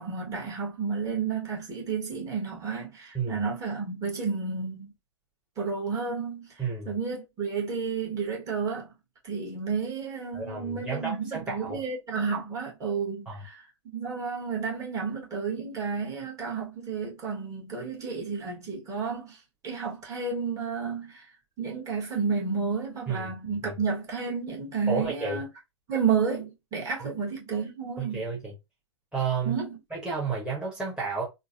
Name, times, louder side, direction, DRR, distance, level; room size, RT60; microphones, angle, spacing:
voice 1, 0.0-4.9 5.6-8.9 9.2-13.6 13.9-21.3 21.6-25.5 25.9-28.2 29.4-29.8, right 5 dB, 20° right, 1.4 m, -31 dB
voice 2, 6.6-6.9 10.3-11.8 13.3-13.4 23.1-23.3 23.6-23.7 24.9-25.4 27.0-27.1 28.0-28.5 29.1-29.5 29.9-31.2, right 5 dB, 5° right, 1.1 m, -31 dB
3.8 x 2.2 x 2.6 m
figure-of-eight pair, 105°, 15 cm